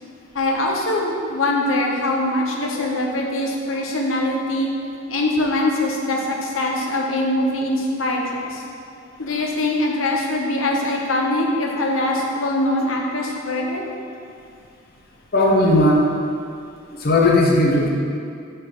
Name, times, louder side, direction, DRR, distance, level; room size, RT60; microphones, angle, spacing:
voice 1, 0.3-4.7 5.1-8.6 9.2-13.8, left 1 dB, 75° left, 0 dB, 1.0 m, -22 dB
voice 2, 15.3-16.0 17.0-17.9, left 1 dB, 50° left, -2 dB, 1.0 m, -16 dB
6.5 x 4.6 x 6.0 m, 2.4 s
head